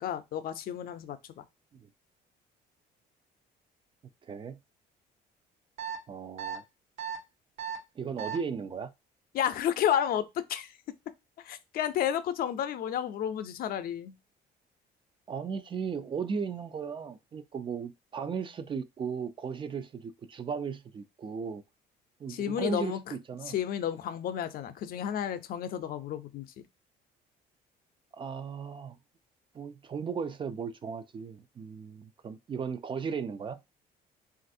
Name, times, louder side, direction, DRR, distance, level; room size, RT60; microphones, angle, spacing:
voice 1, 0.0-1.4 9.3-10.7 11.4-14.1 22.3-23.0 23.4-26.5, left 9 dB, 60° left, 0.5 m, -31 dB
voice 2, 4.3-4.6 6.1-6.6 8.0-8.9 15.3-21.6 22.2-23.6 28.1-29.0 29.5-33.6, right 6 dB, 30° right, 0.3 m, -36 dB
sound 1, 5.8-6.0 6.4-6.6 7.0-7.2 7.6-7.8 8.2-8.4, right 8 dB, 85° right, 1.3 m, -35 dB
3.2 x 2.5 x 2.6 m
cardioid pair, 110°, 17 cm